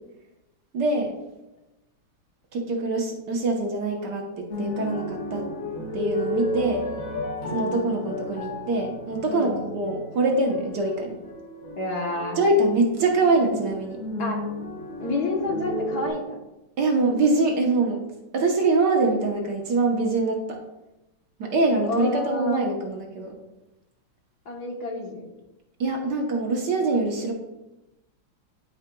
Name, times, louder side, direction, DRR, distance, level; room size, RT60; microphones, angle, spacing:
voice 1, 0.7-1.1 2.5-5.5 5.9-6.8 7.5-11.2 12.4-14.0 16.8-18.0 18.3-20.6 21.4-23.4 25.8-27.3, right 2 dB, 60° right, 1 dB, 1.5 m, -24 dB
sound 1, 4.5-16.1, left 1 dB, 80° left, 2.6 m, -33 dB
voice 2, 11.8-12.4 14.2-14.4 15.0-16.4 21.9-22.6 24.4-25.2, left 2 dB, 55° left, 0 dB, 1.5 m, -29 dB
12.0 x 4.9 x 2.3 m, 0.98 s
omnidirectional pair, 2.2 m